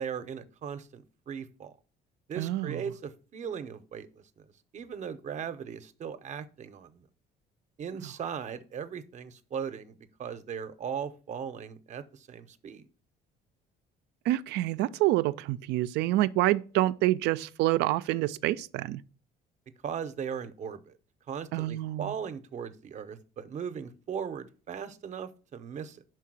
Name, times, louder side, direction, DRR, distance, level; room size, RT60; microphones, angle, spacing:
voice 1, 0.0-1.8 2.3-4.4 4.7-7.0 7.8-12.9 19.8-21.0 21.3-26.0, right 7 dB, 45° right, 0.7 m, -38 dB
voice 2, 2.4-2.8 14.3-19.0 21.5-22.1, right 16 dB, 85° right, 0.4 m, -27 dB
5.7 x 4.6 x 6.1 m
cardioid pair, 110°, 17 cm